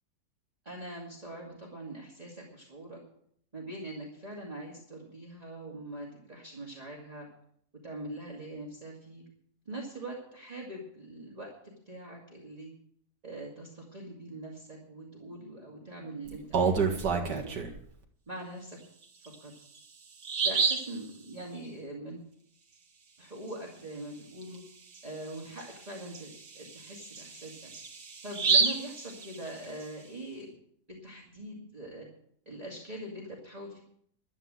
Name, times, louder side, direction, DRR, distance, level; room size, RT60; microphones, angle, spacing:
voice 1, 0.6-3.0 3.5-7.3 7.8-9.2 9.7-12.7 13.2-17.6 18.3-18.8 19.2-19.5 20.4-22.2 23.2-24.6 25.0-27.7 28.2-30.6 31.0-32.1 32.5-33.8, right 1 dB, 25° right, -3 dB, 2.4 m, -43 dB
Bird vocalization bird call bird song, 16.3-17.8 19.2-19.3 19.8-19.9 20.2-20.9 24.4-24.6 24.9-25.0 25.6-29.8, right 5 dB, 90° right, 2.4 m, -29 dB
12.0 x 9.2 x 7.7 m, 0.67 s
omnidirectional pair, 1.8 m